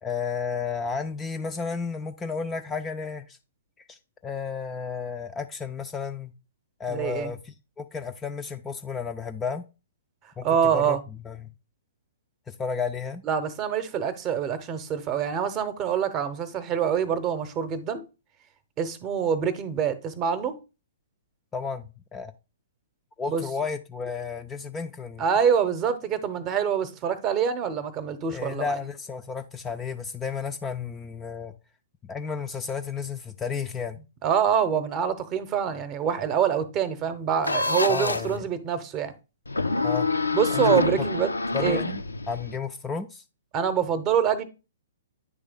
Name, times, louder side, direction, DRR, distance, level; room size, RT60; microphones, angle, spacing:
voice 1, 0.0-3.4 3.9-6.3 6.8-9.7 10.4-10.5 10.7-11.0 11.2-11.5 12.5-13.2 21.5-22.3 23.2-25.2 28.3-31.5 32.0-34.0 37.9-38.5 39.8-40.1 40.5-40.8 41.5-43.2, left 5 dB, 15° left, 0.3 m, -32 dB
voice 2, 6.9-7.3 10.4-11.0 13.2-18.0 18.8-20.5 23.3-23.4 25.2-28.8 34.2-39.1 40.3-41.3 41.6-41.8 43.5-44.4, right 8 dB, 25° right, 0.7 m, -25 dB
sound 1, 37.4-38.4 39.5-42.6, left 3 dB, 80° left, 0.4 m, -26 dB
9.3 x 3.3 x 3.5 m
figure-of-eight pair, 120°, 0 cm